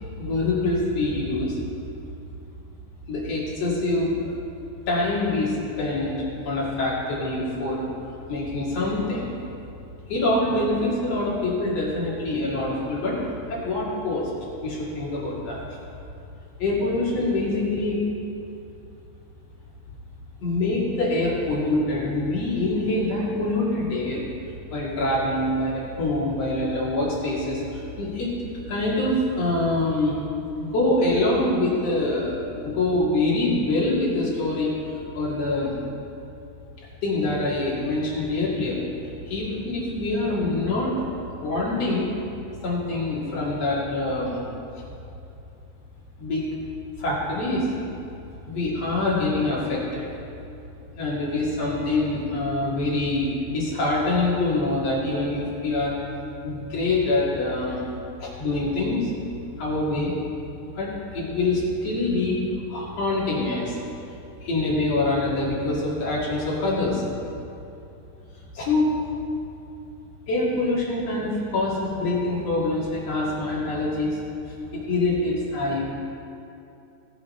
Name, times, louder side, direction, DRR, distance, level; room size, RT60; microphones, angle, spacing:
voice 1, 0.2-1.6 3.1-4.3 4.9-7.9 8.3-9.3 10.1-13.2 13.5-14.3 14.6-15.6 16.6-18.0 20.4-24.2 24.7-28.3 28.7-30.2 30.6-32.3 32.6-34.7 35.1-35.8 36.8-38.8 39.3-41.1 41.4-42.1 42.6-44.4 44.7-44.8 46.2-46.4 47.0-47.7 48.5-50.0 51.0-55.9 56.4-57.8 58.2-59.1 59.6-60.1 60.7-62.4 62.7-63.8 64.4-67.1 68.5-69.0 70.3-74.2 74.7-75.8, left 2 dB, 50° left, -6 dB, 2.9 m, -25 dB
16.0 x 8.0 x 4.2 m, 2.8 s
omnidirectional pair, 4.1 m